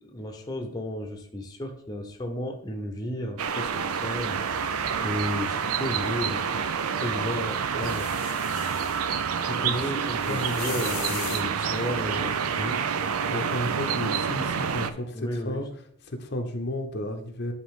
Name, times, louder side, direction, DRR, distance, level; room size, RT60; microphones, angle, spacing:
voice 1, 0.0-6.5 7.0-8.1 9.6-12.8 15.1-15.6, left 1 dB, 20° left, 2 dB, 0.8 m, -34 dB
sound 1, 3.4-14.9, right 6 dB, 90° right, 0.5 m, -28 dB
sound 2, 7.8-9.0 10.1-11.5 13.6-13.7, left 10 dB, 85° left, 0.7 m, -39 dB
voice 2, 9.4-11.4 11.8-12.3 13.3-15.7 16.0-17.5, left 1 dB, 50° left, 4 dB, 0.7 m, -33 dB
10.5 x 4.1 x 3.7 m, 0.68 s
head